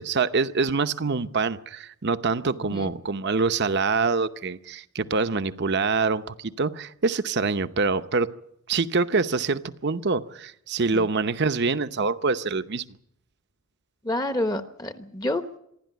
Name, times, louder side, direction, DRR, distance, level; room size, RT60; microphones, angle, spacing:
voice 1, 0.0-8.3 8.7-13.0, right 4 dB, 50° right, 12 dB, 0.8 m, -25 dB
voice 2, 14.0-15.6, left 1 dB, 20° left, 9 dB, 1.0 m, -29 dB
26.5 x 11.5 x 9.3 m, 0.75 s
head